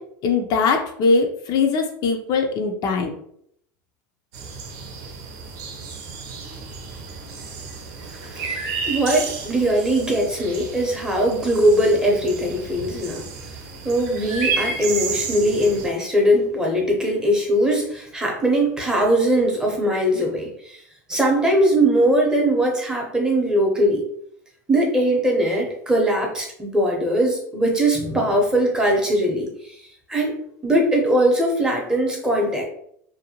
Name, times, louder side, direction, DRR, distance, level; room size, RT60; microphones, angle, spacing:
voice 1, 0.2-3.1, left 4 dB, 50° left, 3 dB, 0.4 m, -21 dB
sound 1, 4.3-15.9, right 4 dB, 70° right, 0.7 m, -32 dB
voice 2, 8.2-13.3 13.8-20.8 21.1-24.0 24.7-29.7 30.1-32.7, right 1 dB, 10° right, -1 dB, 0.7 m, -20 dB
2.6 x 2.1 x 2.8 m, 0.70 s
supercardioid pair, 115°, 9 cm